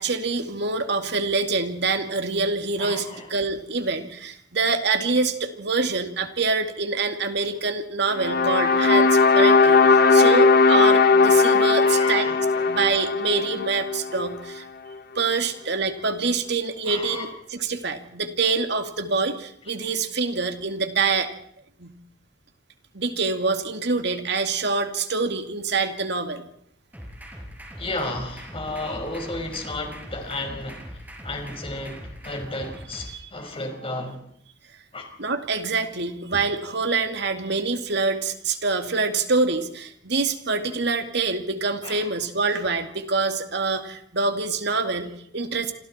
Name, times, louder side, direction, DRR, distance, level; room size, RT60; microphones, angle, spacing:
voice 1, 0.0-12.3 12.7-14.7 15.2-21.3 21.8-21.9 22.9-26.5 33.1-33.2 35.2-45.7, right 4 dB, 65° right, 6 dB, 2.4 m, -25 dB
voice 2, 2.8-3.3 11.8-12.8 16.8-17.3 27.8-34.2 34.9-35.1 41.8-42.1, left 2 dB, 30° left, 3 dB, 5.1 m, -33 dB
sound 1, 8.2-14.4, left 4 dB, 55° left, 1.2 m, -18 dB
sound 2, 26.9-33.1, equal, 10° right, 5.6 m, -41 dB
28.0 x 26.0 x 4.4 m, 0.68 s
head